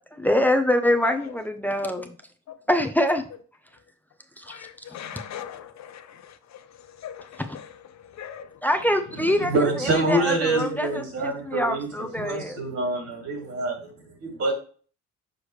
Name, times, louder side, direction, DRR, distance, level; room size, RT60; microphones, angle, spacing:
voice 1, 0.1-2.1 2.7-3.2 4.4-4.7 8.6-9.5 9.8-12.6, left 1 dB, 5° left, 0.7 m, -24 dB
voice 2, 4.5-8.6, left 9 dB, 65° left, 0.9 m, -41 dB
voice 3, 9.1-14.5, right 2 dB, 60° right, 2.7 m, -26 dB
6.6 x 4.8 x 3.2 m
cardioid pair, 90°, 30 cm